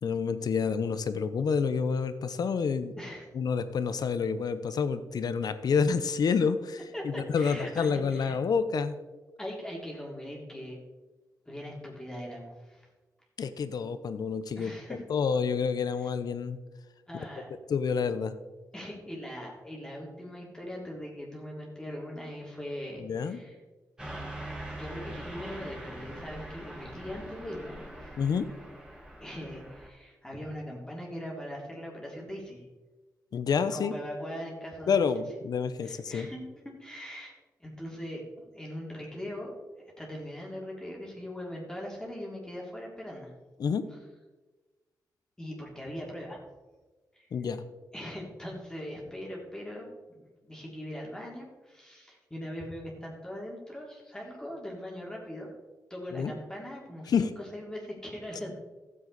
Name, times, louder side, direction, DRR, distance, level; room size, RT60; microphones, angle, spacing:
voice 1, 0.0-2.9 3.3-9.0 13.4-16.6 17.7-18.3 23.0-23.4 28.2-28.5 33.3-33.9 34.9-36.3 43.6-43.9 47.3-47.6 56.1-56.3 57.1-57.3, left 6 dB, 65° left, 12 dB, 0.8 m, -28 dB
voice 2, 6.9-8.4 9.4-10.8 11.4-12.9 14.6-15.0 17.1-17.5 18.7-23.6 24.8-28.1 29.2-32.7 33.7-35.0 35.8-36.4 36.8-37.3 37.6-43.3 45.4-46.4 47.1-47.3 47.9-55.5 55.9-58.5, equal, 10° left, -3 dB, 3.2 m, -40 dB
Car passing by / Truck, 24.0-29.9, right 1 dB, 10° right, 3.3 m, -42 dB
14.5 x 7.7 x 4.1 m, 1.2 s
cardioid pair, 85°, 7 cm